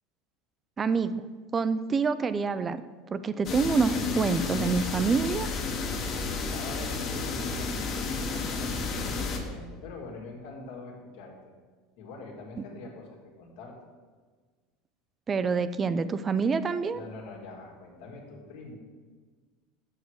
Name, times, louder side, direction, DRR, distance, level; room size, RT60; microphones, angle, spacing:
voice 1, 0.8-1.3 1.5-2.8 3.1-5.5 15.3-17.0, right 5 dB, 25° right, 13 dB, 0.3 m, -27 dB
sound 1, 3.4-9.4, left 4 dB, 45° left, 1.2 m, -31 dB
voice 2, 6.0-11.3 12.0-13.8 16.9-18.7, left 3 dB, 75° left, 0 dB, 1.8 m, -44 dB
7.1 x 6.3 x 4.7 m, 1.4 s
supercardioid pair, 120°, 0 cm